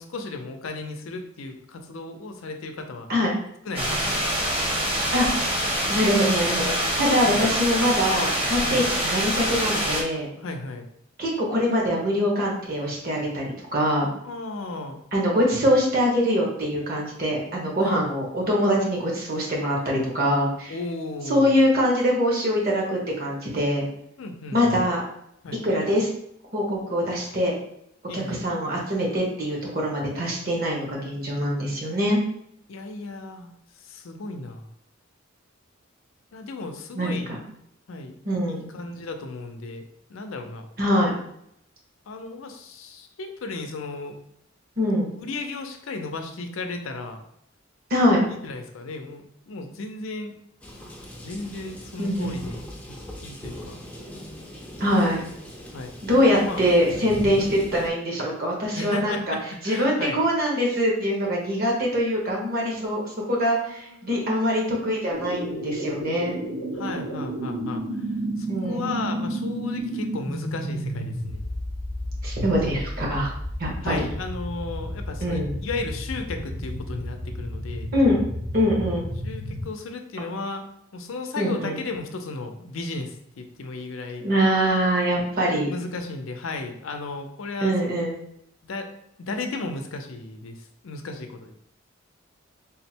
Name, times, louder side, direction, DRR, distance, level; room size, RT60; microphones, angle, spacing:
voice 1, 0.0-3.1 3.7-4.3 7.3-7.5 8.6-8.9 10.4-10.9 14.2-15.0 17.8-18.2 20.7-21.6 24.2-24.8 25.4-25.6 28.1-28.5 32.7-33.5 33.8-34.7 36.3-37.3 37.9-38.2 38.5-39.8 40.1-40.7 42.1-44.2 45.2-47.2 48.3-50.3 51.2-52.6 52.9-53.0 53.2-53.8 55.7-55.9 56.3-56.6 57.0-57.1 58.7-60.2 63.4-64.5 66.7-67.8 68.4-71.4 73.8-77.9 79.2-80.6 80.9-84.2 85.6-87.9 88.6-88.9 89.2-91.5, left 3 dB, 90° left, 5 dB, 0.5 m, -35 dB
sound 1, 3.7-10.0, equal, 30° right, 0.9 m, -25 dB
voice 2, 5.1-5.5 5.9-10.3 11.2-14.1 15.1-20.7 21.3-23.9 24.5-25.0 25.6-26.1 26.5-27.5 28.1-32.2 36.9-37.4 38.2-38.7 40.8-41.1 44.8-45.1 47.9-48.2 52.0-52.4 54.8-55.2 56.0-59.3 59.6-66.4 68.5-68.9 72.2-73.3 73.6-74.0 75.2-75.5 77.9-78.2 78.5-79.1 81.4-81.8 84.2-85.7 87.6-88.1, equal, 50° right, -2 dB, 1.1 m, -23 dB
sound 2, 50.6-57.9, equal, 5° left, 0.5 m, -39 dB
sound 3, 65.1-79.6, equal, 75° right, 1.3 m, -32 dB
3.6 x 2.1 x 4.3 m, 0.74 s
head